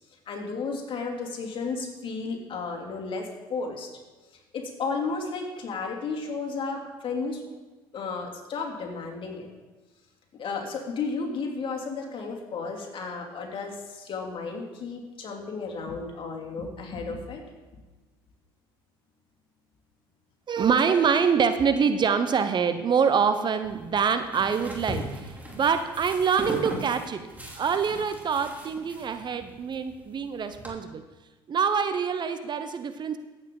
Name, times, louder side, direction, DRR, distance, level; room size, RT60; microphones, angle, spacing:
voice 1, 0.3-3.9 4.5-7.4 7.9-9.5 10.3-17.4, left 4 dB, 45° left, 0 dB, 2.8 m, -33 dB
voice 2, 20.5-27.3 27.6-31.0 31.5-33.2, right 6 dB, 40° right, 10 dB, 0.8 m, -25 dB
sound 1, 23.6-30.7, right 1 dB, 15° right, 2.9 m, -39 dB
14.5 x 8.3 x 3.8 m, 1.2 s
hypercardioid pair, 65°, 12 cm